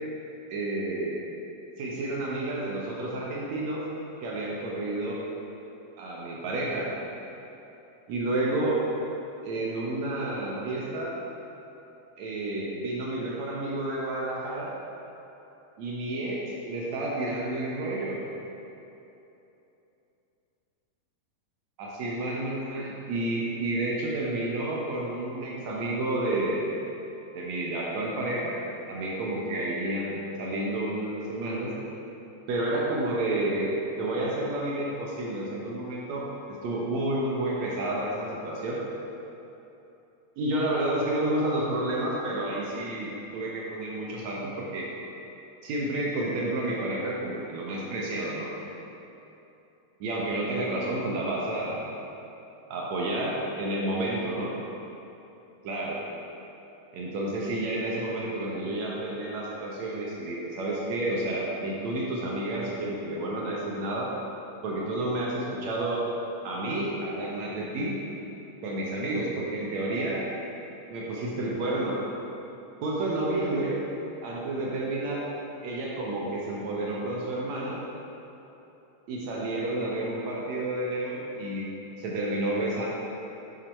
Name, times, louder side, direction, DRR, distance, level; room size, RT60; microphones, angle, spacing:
voice 1, 0.5-1.2 1.8-3.9 4.2-5.2 6.0-6.9 8.1-8.8 9.4-11.2 12.2-14.7 15.8-18.2 21.8-26.7 27.3-28.6 28.9-31.7 32.5-36.3 36.6-38.8 40.4-44.9 45.6-48.5 50.0-51.9 52.7-54.5 55.6-56.0 56.9-64.1 64.6-66.0 66.4-68.0 68.6-70.2 70.9-72.0 72.8-73.8 74.2-75.3 75.6-77.8 79.1-81.7 82.0-82.9, right 1 dB, 45° right, -4 dB, 1.1 m, -30 dB
7.2 x 5.1 x 4.5 m, 3.0 s
figure-of-eight pair, 90°, 0 cm